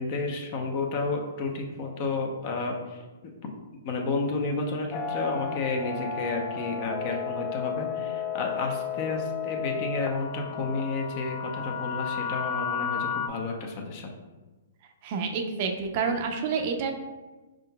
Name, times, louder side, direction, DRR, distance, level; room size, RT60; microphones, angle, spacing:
voice 1, 0.0-3.3 3.8-14.1, left 3 dB, 40° left, 2 dB, 0.7 m, -31 dB
sound 1, 4.9-13.3, left 7 dB, 25° left, 0.3 m, -33 dB
voice 2, 15.0-16.9, right 5 dB, 45° right, 4 dB, 0.5 m, -28 dB
4.5 x 3.7 x 2.3 m, 1.2 s
hypercardioid pair, 140°, 0 cm